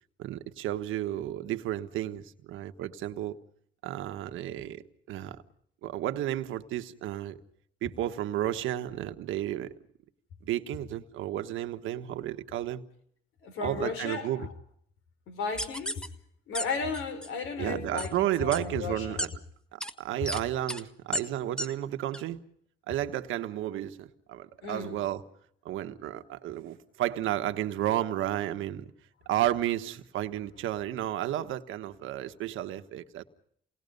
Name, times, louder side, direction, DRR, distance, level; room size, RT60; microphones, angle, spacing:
voice 1, 0.2-3.4 3.8-5.4 5.8-7.4 7.8-9.7 10.4-12.8 13.6-14.5 17.6-19.3 19.7-22.4 22.9-25.2 25.6-28.9 29.2-33.2, right 13 dB, 90° right, 1.4 m, -32 dB
voice 2, 13.4-14.5 15.3-16.0 16.5-19.2 24.6-25.0, left 4 dB, 85° left, 5.2 m, -34 dB
sound 1, 15.6-16.1 16.5-16.6 16.9-17.3 18.0-18.1 18.5-18.6 19.2-19.3 19.8-19.9 20.3-20.4 20.7-20.8 21.1-21.2 21.6-21.7 22.1-22.2, left 1 dB, 5° left, 1.8 m, -32 dB
29.0 x 19.5 x 5.3 m
cardioid pair, 90°, 20 cm